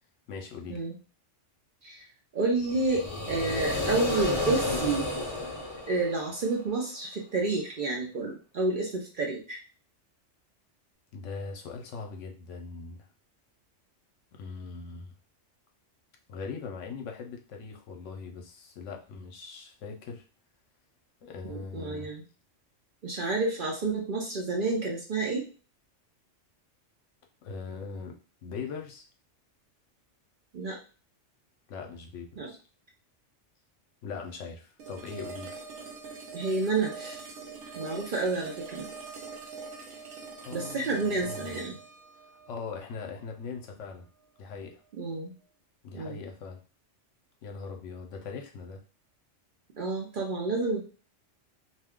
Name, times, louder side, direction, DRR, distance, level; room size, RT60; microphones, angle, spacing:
voice 1, 0.3-0.8 11.1-13.1 14.3-15.1 16.3-20.2 21.2-22.1 27.4-29.1 31.7-32.6 34.0-35.6 40.4-41.5 42.5-44.1 44.4-44.8 45.8-46.6 47.4-48.8, left 5 dB, 75° left, 3 dB, 0.9 m, -40 dB
voice 2, 2.3-5.1 5.9-9.6 21.5-22.2 23.0-25.5 30.5-30.8 32.4-32.5 36.3-37.2 37.8-38.9 40.5-41.8 45.0-45.3 45.9-46.2 49.8-50.8, right 3 dB, 55° right, 0 dB, 0.6 m, -30 dB
sound 1, 2.6-6.6, left 2 dB, 30° left, 0.6 m, -31 dB
sound 2, 34.8-43.8, right 4 dB, 75° right, 0.9 m, -43 dB
2.5 x 2.2 x 3.5 m, 0.36 s
omnidirectional pair, 1.3 m